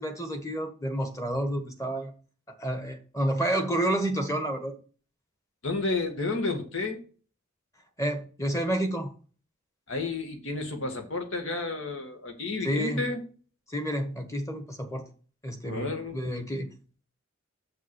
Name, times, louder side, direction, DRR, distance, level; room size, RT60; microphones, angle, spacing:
voice 1, 0.0-2.1 2.6-4.7 8.0-9.1 12.6-13.0 13.7-15.0 15.4-16.7, right 1 dB, 15° left, 6 dB, 1.3 m, -29 dB
voice 2, 5.6-7.0 9.9-13.2 15.6-16.2, left 3 dB, 75° left, 5 dB, 2.0 m, -31 dB
6.9 x 5.9 x 6.4 m, 0.39 s
head